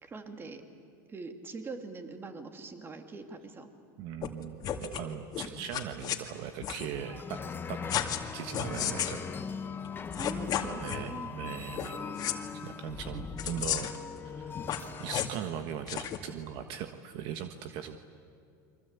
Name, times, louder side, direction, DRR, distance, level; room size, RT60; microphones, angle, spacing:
voice 1, 0.0-0.6 1.1-3.7 10.2-11.3, right 3 dB, 20° right, 5 dB, 2.8 m, -43 dB
voice 2, 4.0-7.8 8.3-9.3 10.0-10.3 10.8-12.0 12.6-13.9 14.2-14.6 15.0-18.0, right 9 dB, 60° right, 8 dB, 1.4 m, -40 dB
sound 1, 4.2-4.3 4.6-5.0 5.3-6.2 6.6-6.9 7.9-8.2 8.5-9.2 9.8-9.9 10.1-11.0 11.7-11.9 12.2-12.3 13.4-14.0 14.6-15.4 15.9-16.2, left 10 dB, 40° left, 2.3 m, -33 dB
sound 2, 6.9-15.2, left 6 dB, 20° left, 1.3 m, -40 dB
29.5 x 24.0 x 8.4 m, 2.4 s
supercardioid pair, 120°, 10 cm